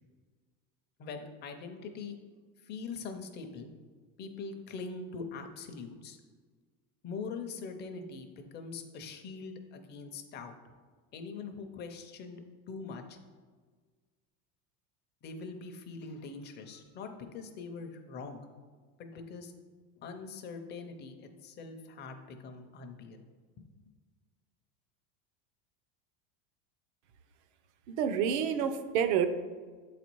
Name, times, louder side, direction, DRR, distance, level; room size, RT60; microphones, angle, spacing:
voice 1, 1.0-2.2 2.6-3.7 4.2-6.2 7.0-8.3 8.5-10.5 11.1-13.2 15.2-18.4 19.0-19.5 20.0-23.2, left 4 dB, 25° left, 6 dB, 0.6 m, -43 dB
voice 2, 27.9-29.3, right 8 dB, 60° right, 9 dB, 0.7 m, -28 dB
7.9 x 4.1 x 4.6 m, 1.5 s
supercardioid pair, 155°, 38 cm